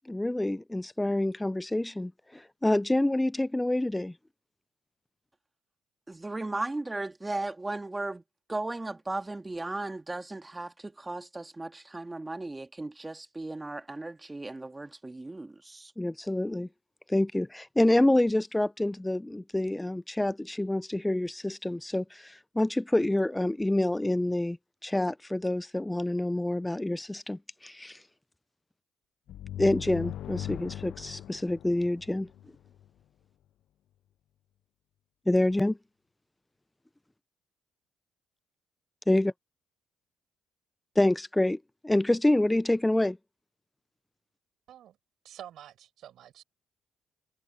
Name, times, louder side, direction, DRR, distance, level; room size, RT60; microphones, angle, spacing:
voice 1, 0.1-4.1 16.0-16.7 17.1-24.6 24.8-28.0 29.6-32.3 35.3-35.8 39.1-39.3 41.0-41.6 41.8-43.2, left 1 dB, 10° left, 0.5 m, -27 dB
voice 2, 6.1-8.2 8.5-15.9, right 2 dB, 20° right, 1.9 m, -36 dB
sound 1, 29.3-32.9, left 12 dB, 75° left, 0.3 m, -39 dB
voice 3, 45.2-46.4, right 11 dB, 75° right, 6.8 m, -48 dB
supercardioid pair, 70°, 0 cm